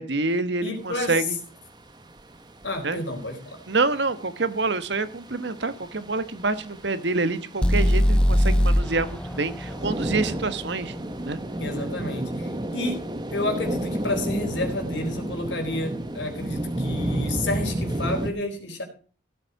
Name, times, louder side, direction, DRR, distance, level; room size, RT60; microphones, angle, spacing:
voice 1, 0.0-1.4 2.8-3.0 3.7-10.9 11.3-11.4, right 3 dB, 70° right, 12 dB, 1.3 m, -27 dB
voice 2, 0.6-1.2 2.6-3.6 11.6-18.8, left 2 dB, 80° left, 5 dB, 4.1 m, -31 dB
sound 1, 0.8-18.3, right 1 dB, 25° right, 1.4 m, -32 dB
sound 2, 7.6-11.6, equal, 5° left, 0.6 m, -22 dB
16.0 x 8.1 x 4.8 m, 0.39 s
head